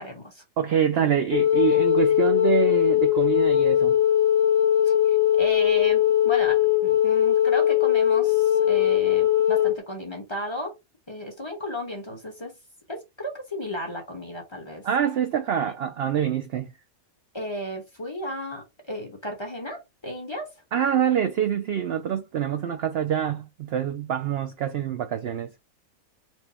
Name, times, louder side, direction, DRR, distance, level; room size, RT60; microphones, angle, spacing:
voice 1, 0.0-0.4 0.9-1.2 4.8-10.7 11.1-12.6 12.9-14.8 15.6-15.7 17.3-20.5, left 1 dB, 20° left, 1.0 m, -34 dB
voice 2, 0.6-4.0 14.8-16.7 20.7-25.5, right 9 dB, 65° right, 0.6 m, -25 dB
Wind instrument woodwind instrument, 1.3-9.8, left 11 dB, 50° left, 1.5 m, -20 dB
4.5 x 2.2 x 4.2 m
omnidirectional pair, 1.5 m